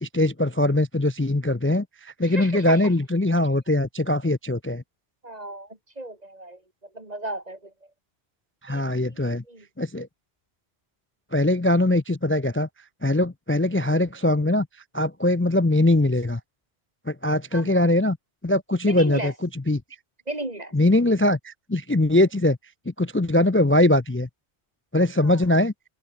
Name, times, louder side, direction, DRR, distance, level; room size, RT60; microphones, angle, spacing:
voice 1, 0.0-4.8 8.6-9.4 9.8-10.1 11.3-12.7 13.0-14.7 14.9-16.4 17.1-18.2 18.4-19.8 20.7-22.6 22.9-24.3 24.9-25.7, left 1 dB, 15° left, 0.4 m, -21 dB
voice 2, 2.2-2.9 5.2-7.7 8.7-9.2 9.4-9.7 17.5-17.8 18.8-19.3 20.3-20.7 25.2-25.4, right 1 dB, 40° right, 3.0 m, -35 dB
omnidirectional pair, 1.1 m